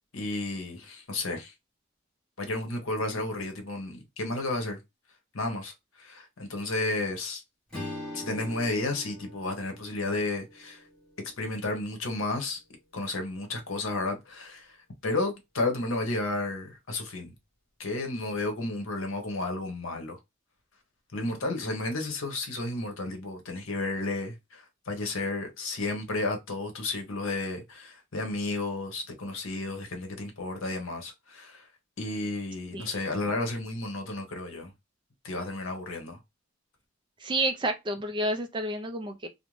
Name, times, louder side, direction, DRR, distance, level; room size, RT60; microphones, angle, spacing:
voice 1, 0.1-1.5 2.4-4.8 5.3-7.4 8.1-10.8 11.4-12.6 12.9-14.7 15.0-17.3 17.8-20.2 21.1-31.7 32.0-34.7 35.2-36.2, left 2 dB, 75° left, 0.8 m, -32 dB
Strum, 7.7-12.3, left 1 dB, 5° left, 1.1 m, -43 dB
voice 2, 37.2-39.3, right 1 dB, 20° right, 0.3 m, -30 dB
2.5 x 2.1 x 3.0 m
head